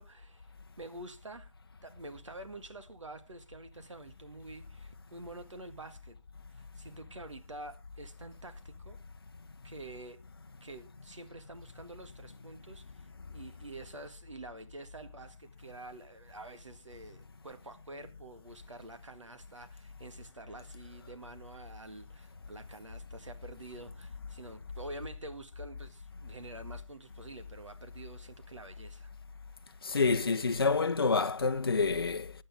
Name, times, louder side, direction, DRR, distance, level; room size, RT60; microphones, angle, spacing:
voice 1, 0.0-1.5 1.8-6.2 6.5-9.0 9.6-10.2 10.6-29.1, right 2 dB, 70° right, 1.8 m, -48 dB
voice 2, 29.8-32.3, left 4 dB, 50° left, 0.7 m, -28 dB
19.0 x 8.6 x 3.5 m
figure-of-eight pair, 175°, 16 cm